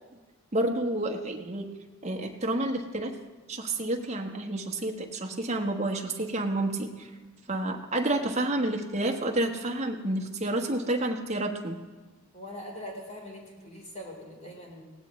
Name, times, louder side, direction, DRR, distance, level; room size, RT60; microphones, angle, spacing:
voice 1, 0.5-1.7 2.0-3.1 3.5-7.1 7.5-11.8, right 1 dB, 30° right, 2 dB, 1.2 m, -29 dB
voice 2, 12.3-14.8, left 1 dB, 35° left, -2 dB, 3.8 m, -42 dB
18.0 x 16.0 x 3.2 m, 1.2 s
head